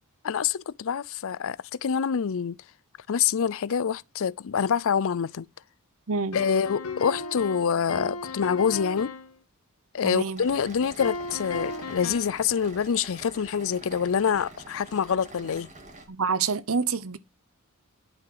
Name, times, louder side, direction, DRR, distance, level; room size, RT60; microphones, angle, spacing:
voice 1, 0.2-2.6 3.1-5.5 6.3-9.1 9.9-15.7, left 7 dB, 65° left, 0.5 m, -26 dB
voice 2, 6.1-6.4 10.0-10.4 16.1-17.2, right 5 dB, 65° right, 1.0 m, -27 dB
sound 1, 6.3-9.3 11.0-12.4, left 3 dB, 90° left, 2.3 m, -35 dB
sound 2, 10.4-16.1, right 2 dB, 35° right, 2.9 m, -46 dB
11.5 x 7.6 x 4.8 m
head